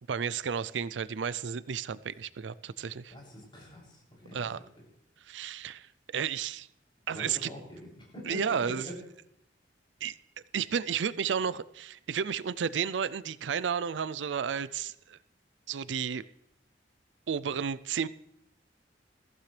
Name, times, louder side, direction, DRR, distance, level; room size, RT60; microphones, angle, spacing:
voice 1, 0.1-3.1 4.3-4.6 5.2-6.7 7.1-7.5 8.3-8.9 10.0-10.2 10.5-15.2 15.7-16.2 17.3-18.1, right 7 dB, 85° right, 17 dB, 0.5 m, -32 dB
voice 2, 3.1-4.8 7.1-8.9, left 1 dB, 30° left, -4 dB, 7.1 m, -44 dB
21.0 x 15.0 x 3.3 m, 0.78 s
head